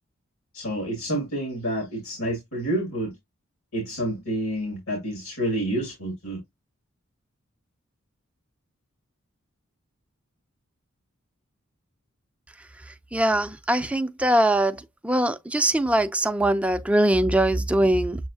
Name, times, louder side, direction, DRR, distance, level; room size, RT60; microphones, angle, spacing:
voice 1, 0.5-3.1 3.7-6.4, right 1 dB, 85° left, 2.3 m, -29 dB
voice 2, 13.1-14.8 15.0-18.2, right 1 dB, 5° right, 0.4 m, -22 dB
7.2 x 2.7 x 2.7 m
head